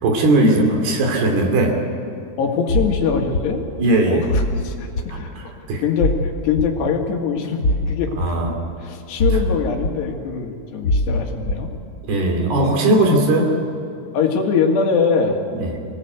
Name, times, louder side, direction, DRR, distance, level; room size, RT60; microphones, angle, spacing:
voice 1, 0.0-1.8 3.8-4.3 5.1-5.8 8.2-8.5 12.1-13.5 15.5-15.8, right 1 dB, 70° right, 3 dB, 4.7 m, -18 dB
voice 2, 2.4-3.6 4.1-5.3 5.8-7.6 7.9-8.1 8.8-11.7 14.1-15.4, left 5 dB, 85° left, 2 dB, 4.2 m, -22 dB
sound 1, 2.7-2.9 3.3-3.5 4.3-4.5 5.0-5.1 6.0-6.2 6.6-6.7 7.6-7.8 8.2-8.3 9.2-9.5 9.8-9.9 10.8-11.1 11.5-11.6, left 1 dB, 40° left, 1.8 m, -20 dB
25.0 x 18.0 x 8.1 m, 2.6 s
omnidirectional pair, 4.7 m